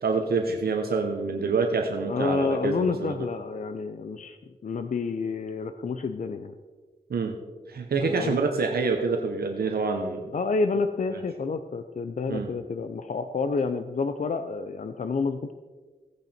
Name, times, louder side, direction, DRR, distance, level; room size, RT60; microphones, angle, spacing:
voice 1, 0.0-3.1 7.1-7.3 7.7-10.3 12.3-12.5, right 4 dB, 80° right, 3 dB, 1.2 m, -26 dB
voice 2, 2.1-4.4 4.6-6.5 8.0-8.4 10.3-15.5, left 4 dB, 55° left, 8 dB, 0.6 m, -29 dB
16.5 x 9.1 x 4.4 m, 1.4 s
wide cardioid pair, 120°, 16 cm